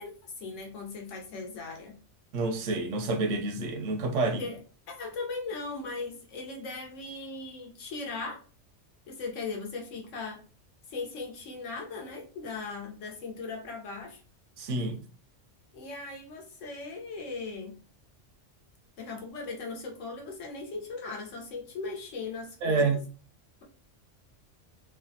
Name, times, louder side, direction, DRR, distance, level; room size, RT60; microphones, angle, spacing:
voice 1, 0.0-2.0 4.2-4.6 4.9-8.4 9.1-10.4 10.9-14.2 15.7-17.8 19.0-23.0, left 3 dB, 85° left, 1.1 m, -38 dB
voice 2, 2.3-4.4 14.6-15.0 22.6-23.0, right 3 dB, 85° right, 1.0 m, -28 dB
3.2 x 2.1 x 2.6 m
omnidirectional pair, 1.3 m